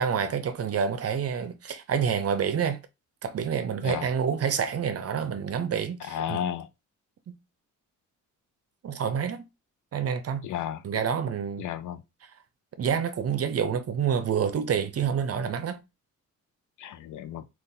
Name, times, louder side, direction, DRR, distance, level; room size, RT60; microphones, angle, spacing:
voice 1, 0.0-2.8 3.2-6.4 7.3-7.4 8.8-9.5 9.9-10.4 10.8-11.7 12.8-15.8, right 7 dB, 50° right, 0.6 m, -28 dB
voice 2, 6.0-6.7 10.4-10.8 11.6-12.0 16.8-17.4, left 10 dB, 70° left, 0.5 m, -33 dB
3.7 x 2.5 x 2.7 m
cardioid pair, 75°, 31 cm